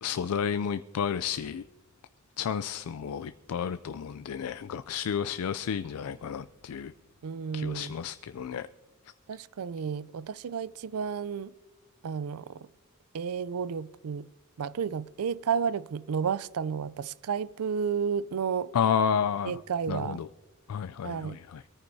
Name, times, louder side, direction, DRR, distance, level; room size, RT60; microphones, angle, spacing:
voice 1, 0.0-1.6 2.4-6.9 7.5-8.7 18.7-19.6 19.9-20.3 20.7-21.6, left 7 dB, 80° left, 0.4 m, -31 dB
voice 2, 7.2-7.9 9.3-11.5 12.0-12.7 13.1-14.3 14.6-18.7 19.4-20.2 21.0-21.4, right 6 dB, 80° right, 0.4 m, -32 dB
22.5 x 14.0 x 2.7 m
head